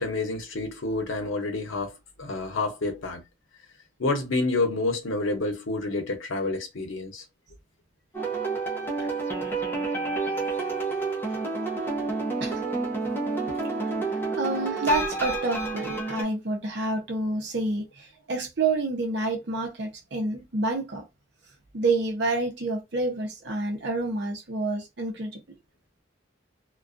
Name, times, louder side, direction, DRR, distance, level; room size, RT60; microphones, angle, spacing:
voice 1, 0.0-1.9 2.2-3.2 4.0-7.2 9.0-9.1, left 2 dB, 90° left, 0.8 m, -28 dB
sound 1, 8.1-16.2, right 3 dB, 10° left, 0.6 m, -29 dB
voice 2, 14.4-21.0 21.7-25.4, right 2 dB, 60° right, 0.7 m, -28 dB
2.4 x 2.2 x 2.5 m
head